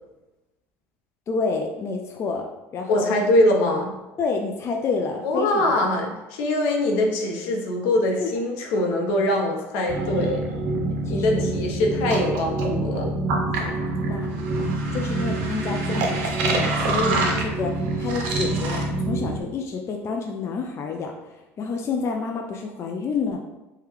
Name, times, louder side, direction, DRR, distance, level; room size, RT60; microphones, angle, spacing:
voice 1, 1.3-2.5 2.7-3.0 4.2-5.6 8.2-8.3 11.1-11.4 13.5-13.8 14.1-14.3 14.6-23.4, left 4 dB, 40° left, 2 dB, 0.3 m, -29 dB
voice 2, 2.9-3.9 5.2-10.4 11.1-13.1, left 1 dB, 75° left, 1 dB, 0.6 m, -23 dB
sound 1, 9.9-19.4, right 2 dB, 70° right, 0.6 m, -25 dB
3.4 x 2.2 x 3.0 m, 1.0 s
hypercardioid pair, 80°, 7 cm